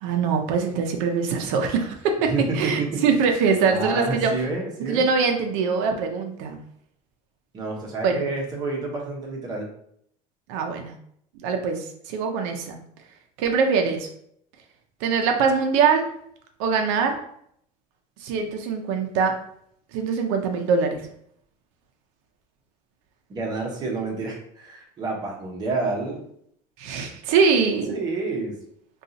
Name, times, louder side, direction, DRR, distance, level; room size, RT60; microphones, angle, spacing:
voice 1, 0.0-4.3 4.9-6.6 8.0-8.3 10.5-10.9 11.4-12.8 13.4-14.1 15.0-16.1 16.6-17.2 18.2-19.3 19.9-21.0 26.8-27.9, right 5 dB, 90° right, 4 dB, 0.5 m, -23 dB
voice 2, 2.2-3.0 3.7-5.1 7.5-9.7 23.3-26.2 27.9-28.6, right 3 dB, 25° right, -1 dB, 0.8 m, -29 dB
2.6 x 2.3 x 3.8 m, 0.68 s
cardioid pair, 170°, 16 cm